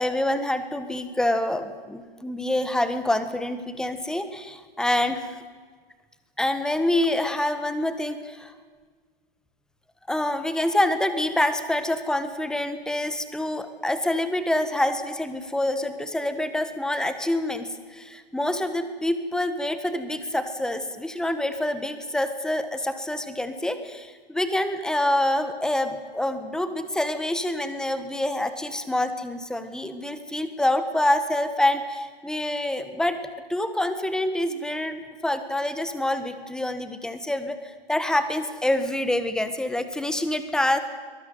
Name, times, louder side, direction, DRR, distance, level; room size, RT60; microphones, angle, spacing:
voice 1, 0.0-5.4 6.4-8.5 10.1-33.2 33.5-40.8, left 1 dB, ahead, 10 dB, 1.5 m, -26 dB
23.5 x 20.5 x 9.3 m, 1.5 s
hypercardioid pair, 135°, 30 cm